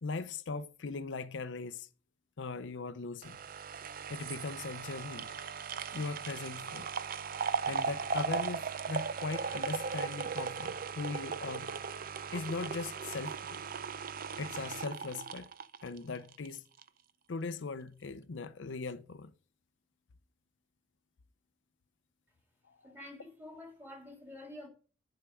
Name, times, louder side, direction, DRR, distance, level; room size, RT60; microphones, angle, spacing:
voice 1, 0.0-1.9 2.4-3.4 4.1-5.3 5.9-6.9 7.7-11.7 12.3-13.6 14.4-15.5 15.8-16.6 17.3-19.3, left 4 dB, 90° left, 0.6 m, -39 dB
sound 1, 3.2-16.5 16.8-16.9, right 6 dB, 50° right, 0.5 m, -37 dB
voice 2, 22.8-24.7, left 1 dB, 10° right, 2.4 m, -48 dB
10.5 x 4.8 x 4.9 m
head